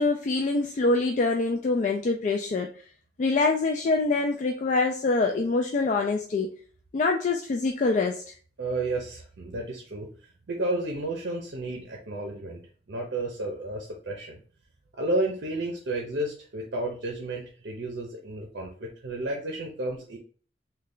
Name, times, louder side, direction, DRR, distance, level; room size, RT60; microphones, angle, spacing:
voice 1, 0.0-2.7 3.2-6.6 6.9-8.2, left 3 dB, 40° left, 2 dB, 0.3 m, -25 dB
voice 2, 8.6-10.1 10.5-12.6 12.9-14.4 14.9-20.2, right 2 dB, 70° right, 0 dB, 0.6 m, -32 dB
3.2 x 2.3 x 3.7 m, 0.42 s
head